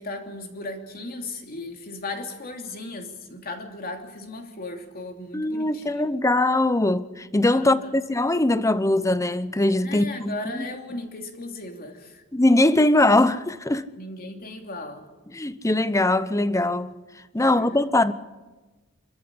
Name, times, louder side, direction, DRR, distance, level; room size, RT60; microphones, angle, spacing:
voice 1, 0.0-6.0 7.5-7.9 9.8-12.2 14.0-15.1 17.4-17.8, left 2 dB, 45° left, 2.9 m, -36 dB
voice 2, 5.3-10.6 12.3-13.9 15.3-16.9 17.3-18.1, left 2 dB, 15° left, 0.8 m, -21 dB
26.0 x 14.0 x 9.9 m
head